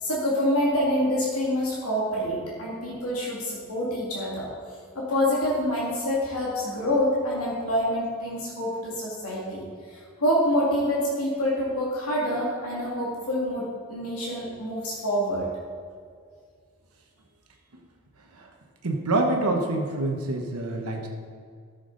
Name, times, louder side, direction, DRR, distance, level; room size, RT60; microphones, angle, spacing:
voice 1, 0.0-4.5 4.9-13.6 13.9-15.5, equal, 75° left, -5 dB, 2.3 m, -26 dB
voice 2, 18.8-21.1, right 2 dB, 80° right, 2 dB, 1.1 m, -26 dB
13.5 x 7.0 x 4.0 m, 2.1 s
head